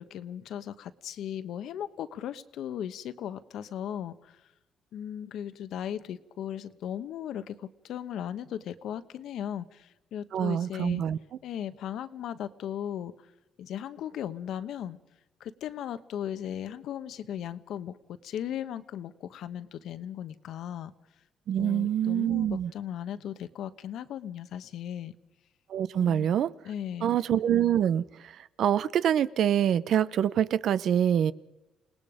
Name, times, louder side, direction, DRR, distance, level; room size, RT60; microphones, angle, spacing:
voice 1, 0.0-4.4 4.9-11.0 11.4-13.1 13.6-15.0 15.4-20.9 21.6-25.1 26.0-26.3 26.6-27.1, left 10 dB, 80° left, 1.1 m, -37 dB
voice 2, 10.3-11.2 21.5-22.7 25.7-26.5 27.0-31.3, right 9 dB, 70° right, 0.8 m, -25 dB
28.5 x 19.0 x 5.0 m
cardioid pair, 90°, 0 cm